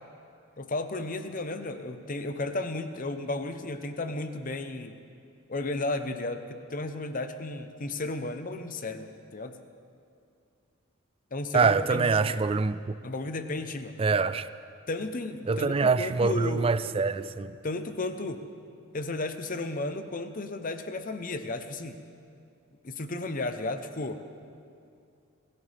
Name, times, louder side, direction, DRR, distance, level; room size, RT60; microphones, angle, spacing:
voice 1, 0.6-5.0 5.5-9.6 11.3-12.4 13.0-14.0 14.9-16.7 17.6-18.4 18.9-22.0 22.8-24.2, left 2 dB, 40° left, 0.8 m, -34 dB
voice 2, 11.5-12.9 14.0-14.5 15.5-17.6, right 4 dB, 25° right, 0.4 m, -25 dB
24.5 x 15.5 x 3.5 m
head